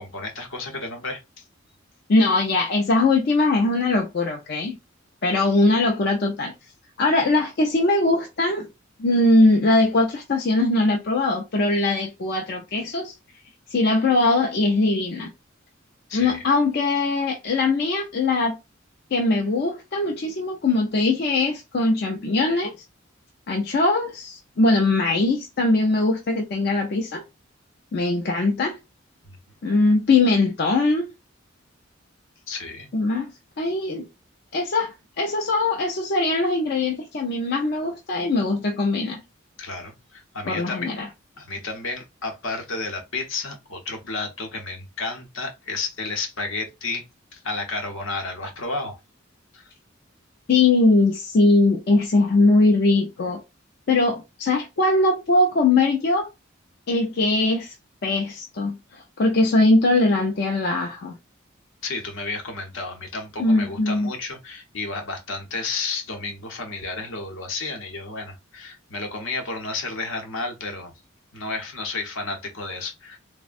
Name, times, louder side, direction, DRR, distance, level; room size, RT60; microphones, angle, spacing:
voice 1, 0.0-1.4 16.1-16.4 29.2-29.4 32.5-32.9 39.6-41.0 41.4-47.0 47.3-49.0 49.5-49.7 61.8-70.9 71.3-73.2, left 3 dB, 75° left, 0.9 m, -32 dB
voice 2, 2.1-4.8 5.2-6.5 7.0-8.7 9.0-13.1 13.7-15.3 16.1-18.6 19.1-22.7 23.5-27.2 27.9-28.8 29.6-31.1 32.9-33.3 33.6-34.1 34.5-39.2 40.4-41.1 50.5-53.4 53.9-56.3 56.9-57.7 58.0-61.1 63.4-64.1, left 2 dB, 55° left, 0.4 m, -21 dB
3.4 x 2.1 x 2.5 m
head